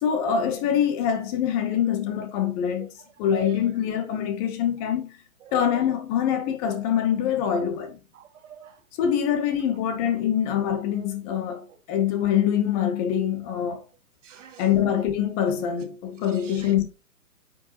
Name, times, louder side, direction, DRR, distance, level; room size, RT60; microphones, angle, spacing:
voice 1, 0.0-2.9 3.2-5.0 5.5-8.0 9.0-13.8 14.6-16.8, left 9 dB, 25° left, 1.0 m, -24 dB
voice 2, 3.3-3.7 5.4-6.0 8.1-8.8 10.0-10.1 11.7-11.8 14.2-14.8 16.3-16.7, right 6 dB, 55° right, 2.1 m, -46 dB
9.4 x 5.2 x 2.9 m
hypercardioid pair, 130°, 44 cm